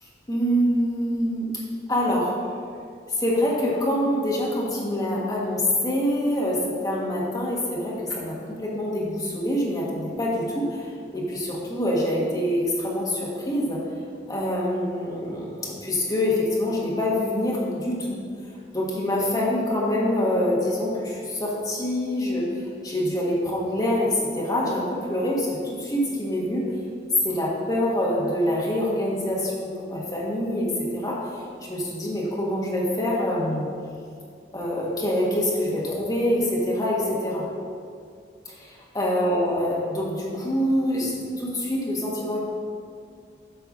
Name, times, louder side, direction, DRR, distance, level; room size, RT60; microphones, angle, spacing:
voice 1, 0.3-1.5 1.9-2.3 3.1-13.8 14.3-18.2 18.7-22.5 22.8-26.6 27.2-31.4 31.7-33.7 34.5-37.5 38.4-42.4, left 1 dB, 20° left, -4 dB, 1.4 m, -25 dB
8.0 x 4.5 x 6.1 m, 2.3 s
head